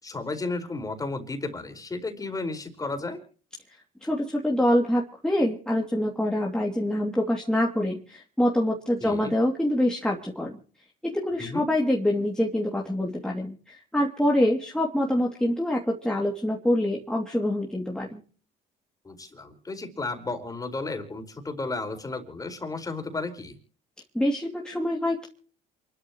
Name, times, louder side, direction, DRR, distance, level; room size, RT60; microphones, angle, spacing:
voice 1, 0.0-3.2 9.0-9.3 11.4-11.6 19.0-23.5, left 3 dB, 20° left, 5 dB, 4.8 m, -33 dB
voice 2, 4.0-10.6 11.0-18.2 24.1-25.3, left 1 dB, 5° left, -2 dB, 2.9 m, -25 dB
28.0 x 13.0 x 3.2 m, 0.42 s
cardioid pair, 110°, 17 cm